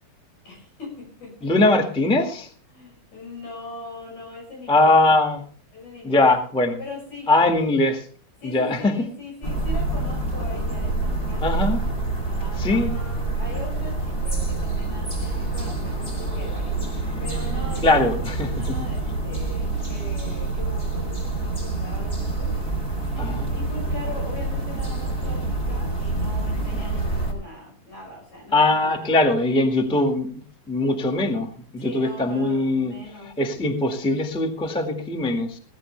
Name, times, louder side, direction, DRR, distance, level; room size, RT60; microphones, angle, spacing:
voice 1, 0.4-1.6 2.7-4.9 5.7-6.3 6.8-7.3 7.7-7.8 8.4-11.6 12.2-22.8 23.1-29.2 31.8-33.4, left 3 dB, 75° left, -2 dB, 7.7 m, -40 dB
voice 2, 1.4-2.5 4.7-5.4 6.0-6.8 7.3-8.0 8.4-8.9 11.4-11.8 12.6-12.9 17.8-18.8 23.2-23.5 28.5-30.3 30.7-32.9 33.2-35.6, left 2 dB, 5° left, 4 dB, 1.0 m, -21 dB
sound 1, 9.4-27.3, right 3 dB, 20° left, 2.8 m, -27 dB
17.0 x 14.5 x 3.3 m, 0.42 s
omnidirectional pair, 3.4 m